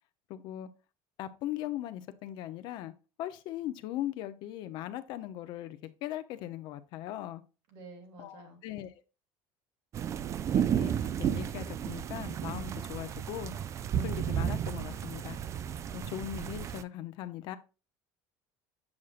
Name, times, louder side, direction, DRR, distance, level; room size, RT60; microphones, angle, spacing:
voice 1, 0.3-0.7 1.2-2.9 3.2-7.4 8.2-8.9 10.5-13.5 13.9-15.4 15.9-17.6, left 13 dB, 65° left, 0.7 m, -39 dB
voice 2, 7.7-8.6, right 2 dB, 75° right, 2.4 m, -50 dB
sound 1, 9.9-16.8, right 9 dB, 35° right, 0.4 m, -33 dB
7.2 x 6.4 x 2.5 m
supercardioid pair, 120°, 8 cm